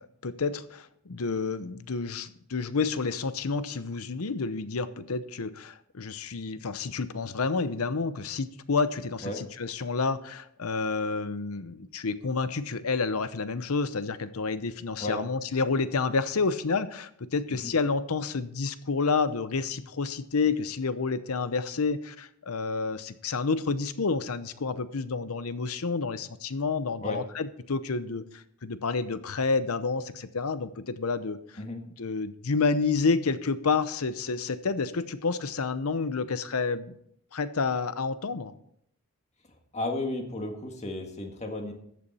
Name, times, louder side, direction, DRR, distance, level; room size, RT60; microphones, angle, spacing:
voice 1, 0.2-31.4 32.0-36.9 37.3-38.5, left 4 dB, 90° left, 14 dB, 0.8 m, -29 dB
voice 2, 39.7-41.7, left 2 dB, 30° left, 3 dB, 1.7 m, -33 dB
14.0 x 8.5 x 4.2 m, 0.70 s
head